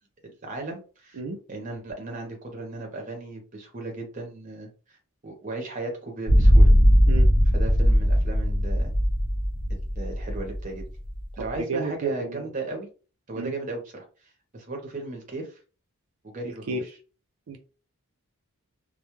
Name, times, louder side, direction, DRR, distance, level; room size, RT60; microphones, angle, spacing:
voice 1, 0.4-1.2 1.5-5.0 5.2-6.7 7.5-8.9 9.7-10.9 11.4-12.9 13.3-15.6 16.2-17.0, right 2 dB, 35° right, 0.7 m, -36 dB
sound 1, 6.3-11.5, equal, 75° left, 0.7 m, -19 dB
voice 2, 11.5-12.4 13.3-13.5 16.7-16.8 17.5-17.6, right 3 dB, 75° right, 0.4 m, -31 dB
2.2 x 2.0 x 2.9 m
head